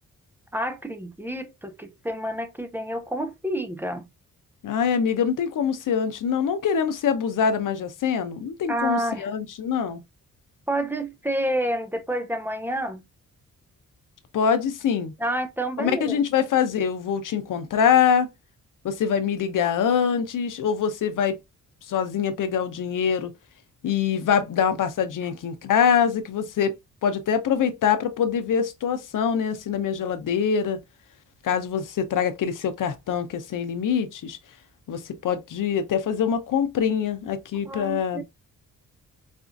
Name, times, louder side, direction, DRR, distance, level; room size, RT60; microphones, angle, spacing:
voice 1, 0.5-4.1 8.7-9.3 10.7-13.0 15.2-16.2 37.7-38.2, right 1 dB, 5° right, 0.6 m, -29 dB
voice 2, 4.6-10.0 14.3-15.1 15.8-18.3 18.8-21.4 21.9-23.3 23.8-26.7 27.0-30.8 31.4-34.4 34.9-38.2, left 7 dB, 75° left, 0.7 m, -24 dB
4.3 x 2.4 x 2.5 m
cardioid pair, 100°, 32 cm